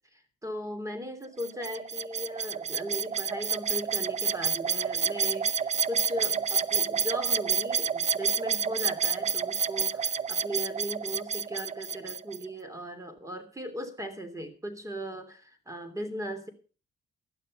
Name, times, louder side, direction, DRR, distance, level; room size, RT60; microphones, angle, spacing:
voice 1, 0.1-16.5, equal, 15° right, 9 dB, 3.1 m, -38 dB
sound 1, 1.4-12.4, right 6 dB, 35° right, 0.6 m, -29 dB
13.5 x 12.0 x 5.4 m, 0.37 s
cardioid pair, 90°, 20 cm